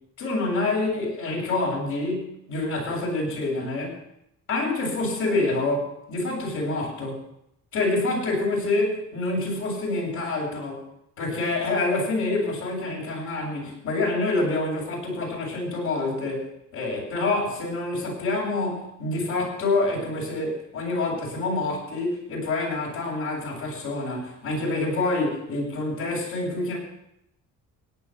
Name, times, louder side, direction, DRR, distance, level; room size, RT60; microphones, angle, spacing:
voice 1, 0.2-4.0 4.5-7.2 7.7-10.8 11.2-26.8, left 2 dB, 80° left, -3 dB, 7.6 m, -27 dB
17.5 x 9.5 x 5.9 m, 0.81 s
cardioid pair, 90°, 30 cm